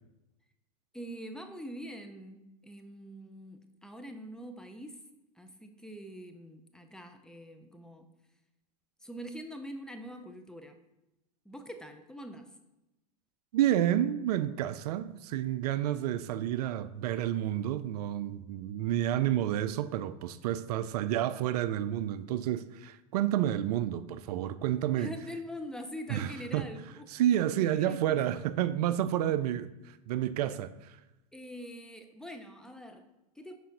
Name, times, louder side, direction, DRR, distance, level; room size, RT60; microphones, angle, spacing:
voice 1, 0.9-5.1 5.3-8.1 9.0-10.8 11.4-12.6 24.9-27.1 27.8-28.4 31.3-33.6, equal, 5° left, 0.5 m, -44 dB
voice 2, 13.5-25.1 26.1-26.3 26.5-26.6 27.2-31.0, right 12 dB, 70° right, 0.4 m, -30 dB
6.2 x 4.7 x 4.0 m
hypercardioid pair, 105°, 21 cm